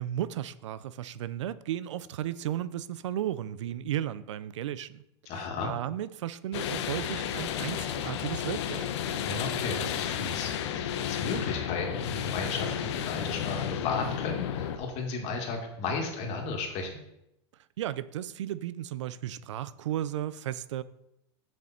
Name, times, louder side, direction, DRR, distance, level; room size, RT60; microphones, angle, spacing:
voice 1, 0.0-5.0 5.3-8.9 17.8-20.8, right 11 dB, 85° right, 0.5 m, -34 dB
voice 2, 5.3-5.7 9.2-16.9, left 4 dB, 45° left, 2.3 m, -34 dB
sound 1, 6.5-14.8, left 9 dB, 70° left, 0.9 m, -32 dB
6.8 x 6.4 x 4.4 m
supercardioid pair, 120°, 15 cm